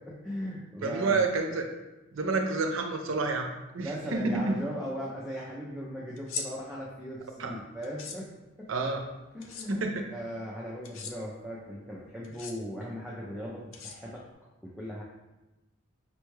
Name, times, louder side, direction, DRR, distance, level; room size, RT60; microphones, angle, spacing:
voice 1, 0.0-1.3 3.8-8.3 8.6-8.7 9.3-9.8 10.1-14.2 14.6-15.0, equal, ahead, -6 dB, 0.4 m, -38 dB
voice 2, 0.8-1.6 2.1-3.5 3.7-4.4 7.4-7.5 8.7-9.0 9.7-10.0, right 3 dB, 75° right, 4 dB, 0.5 m, -29 dB
sound 1, 6.2-6.5 7.8-8.2 9.4-9.7 10.8-11.1 12.2-12.5 13.7-14.3, left 5 dB, 75° left, 0.4 m, -38 dB
5.2 x 2.3 x 3.1 m, 1.0 s
head